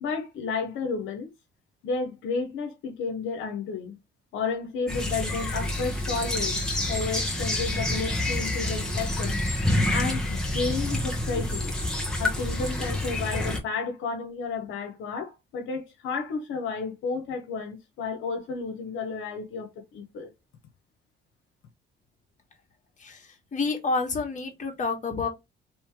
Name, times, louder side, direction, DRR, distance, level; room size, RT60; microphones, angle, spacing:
voice 1, 0.0-1.3 1.8-4.0 4.3-9.4 9.9-11.8 12.2-20.3, left 4 dB, 85° left, 0.7 m, -32 dB
sound 1, 4.9-13.6, left 1 dB, 5° left, 1.3 m, -28 dB
voice 2, 23.5-25.3, left 4 dB, 40° left, 1.4 m, -28 dB
3.1 x 2.9 x 3.4 m
cardioid pair, 90°, 20 cm